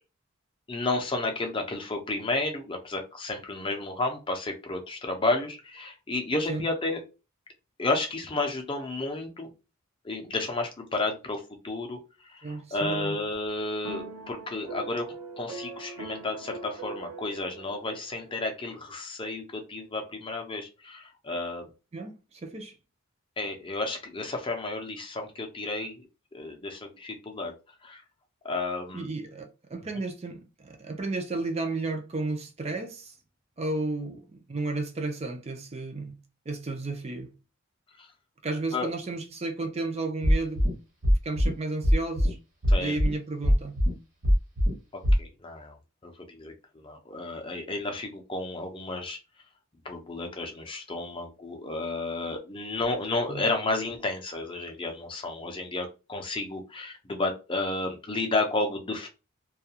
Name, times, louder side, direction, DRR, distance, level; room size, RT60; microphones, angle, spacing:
voice 1, 0.7-7.0 7.8-9.5 10.0-21.7 23.4-26.0 26.3-27.5 27.8-28.0 28.4-29.1 38.0-38.1 38.7-38.9 42.7-43.0 44.9-45.8 46.0-49.2 49.8-59.1, left 2 dB, 25° left, 0.5 m, -32 dB
voice 2, 12.4-13.2 21.9-22.7 28.9-33.1 33.6-36.2 36.5-37.3 38.4-40.6 41.2-42.4 42.8-43.8 53.3-53.5, right 3 dB, 30° right, 0.4 m, -33 dB
sound 1, 13.8-18.3, right 3 dB, 85° right, 0.6 m, -41 dB
sound 2, 40.2-40.7 41.0-41.5 41.8-42.3 42.6-43.1 43.4-43.9 44.2-44.7 45.0-45.1, equal, 55° right, 1.0 m, -21 dB
2.3 x 2.2 x 2.7 m
head